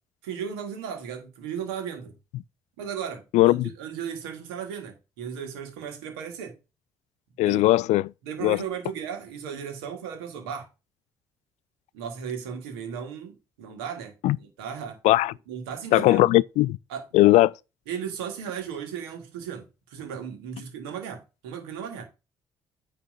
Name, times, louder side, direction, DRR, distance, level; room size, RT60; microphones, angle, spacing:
voice 1, 0.2-2.1 2.8-6.6 7.5-7.7 8.2-10.7 11.9-15.0 15.5-16.3 16.9-17.1 17.9-22.1, right 7 dB, 85° right, 1.9 m, -36 dB
voice 2, 3.3-3.7 7.4-8.1 8.4-8.6 14.2-14.4 15.0-15.3 15.9-16.8 17.1-17.5, left 17 dB, 65° left, 0.4 m, -19 dB
9.0 x 3.3 x 5.4 m
hypercardioid pair, 50°, 13 cm